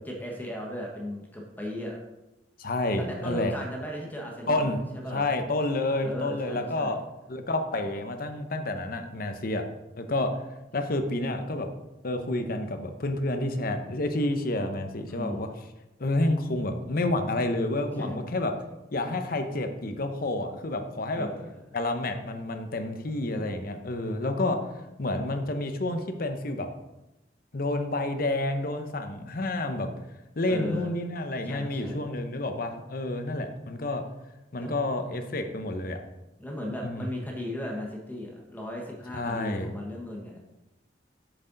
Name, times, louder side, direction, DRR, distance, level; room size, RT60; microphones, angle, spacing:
voice 1, 0.0-2.0 3.0-5.3 6.0-7.0 15.0-15.5 18.0-18.2 21.1-21.6 30.5-30.9 31.4-32.0 34.6-34.7 36.4-40.4, left 1 dB, 10° left, -1 dB, 1.3 m, -36 dB
voice 2, 2.6-3.5 4.5-4.8 5.1-7.0 7.3-9.6 10.0-10.3 10.7-11.7 12.0-15.5 16.0-18.5 18.9-21.3 21.7-24.6 25.0-26.7 27.5-29.9 30.4-34.0 34.5-36.0 36.8-37.1 39.1-39.7, left 2 dB, 55° left, 6 dB, 0.9 m, -29 dB
7.8 x 6.5 x 4.0 m, 0.98 s
head